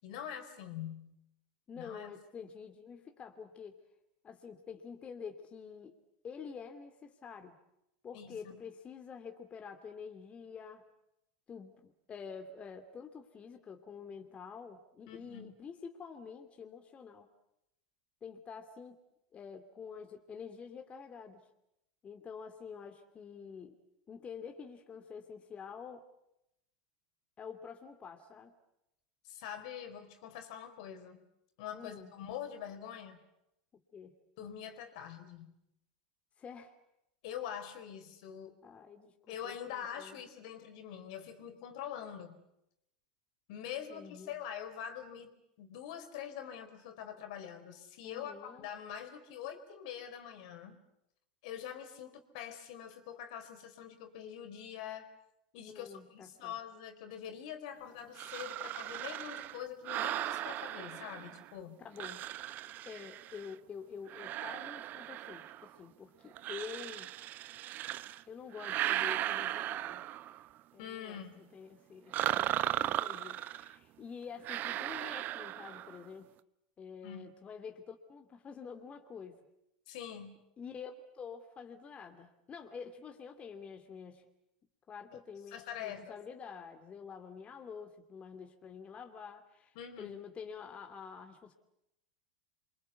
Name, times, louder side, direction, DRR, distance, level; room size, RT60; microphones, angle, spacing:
voice 1, 0.0-1.2 1.8-2.1 8.1-8.6 15.1-15.5 29.2-31.3 31.6-33.2 34.4-35.5 37.2-38.6 39.3-42.3 43.5-45.3 45.6-50.8 51.4-55.1 55.5-61.8 70.8-71.4 77.0-77.3 79.9-80.4 85.1-85.2 85.5-86.2 89.8-90.1, left 9 dB, 65° left, 8 dB, 4.3 m, -44 dB
voice 2, 1.7-3.8 4.2-5.9 6.2-7.6 8.0-10.8 11.5-17.3 18.2-19.0 19.3-21.5 22.0-23.8 24.1-26.1 27.4-28.5 31.7-32.1 33.7-34.2 36.4-36.7 38.6-40.2 43.9-44.3 48.0-48.7 55.7-56.5 61.8-62.3 62.9-67.1 68.3-70.1 70.7-76.3 76.8-79.4 80.6-84.2 84.9-91.5, left 6 dB, 30° left, 6 dB, 2.7 m, -48 dB
sound 1, 58.2-61.5 62.0-63.5 64.1-65.7 66.4-68.2 68.5-70.5 72.1-73.7 74.4-76.0, right 13 dB, 45° right, 1.0 m, -37 dB
27.5 x 24.5 x 8.3 m, 0.83 s
hypercardioid pair, 100°, 4 cm